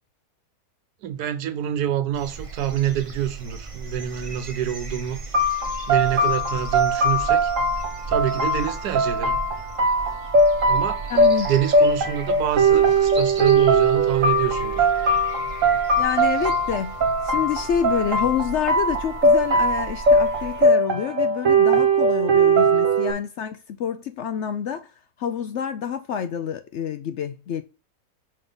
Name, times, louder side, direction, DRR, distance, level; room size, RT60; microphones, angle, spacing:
voice 1, 1.0-5.2 5.9-7.5 8.1-9.4 10.7-11.0 11.5-14.9, right 11 dB, 75° right, 1.3 m, -27 dB
sound 1, 2.1-20.6, right 4 dB, 25° right, 0.9 m, -37 dB
sound 2, 5.3-23.1, right 2 dB, 55° right, 1.4 m, -20 dB
voice 2, 11.1-11.5 16.0-24.9 25.2-27.6, left 8 dB, 75° left, 0.6 m, -28 dB
5.5 x 3.7 x 5.2 m
omnidirectional pair, 1.8 m